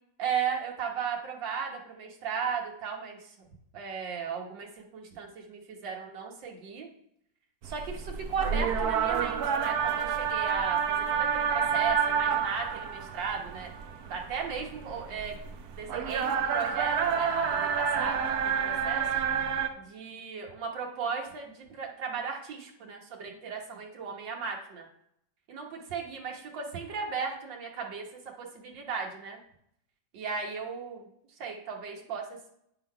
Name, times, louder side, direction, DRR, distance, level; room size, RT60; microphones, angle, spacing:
voice 1, 0.2-3.5 3.7-6.9 7.6-13.7 14.1-15.4 15.8-18.2 18.6-19.1 19.8-24.9 25.5-28.1 28.4-29.4 30.1-31.1 31.4-32.5, right 6 dB, 85° right, 1 dB, 1.9 m, -36 dB
sound 1, 7.6-19.7, right 7 dB, 65° right, 1.2 m, -29 dB
9.6 x 4.0 x 5.6 m, 0.73 s
omnidirectional pair, 1.9 m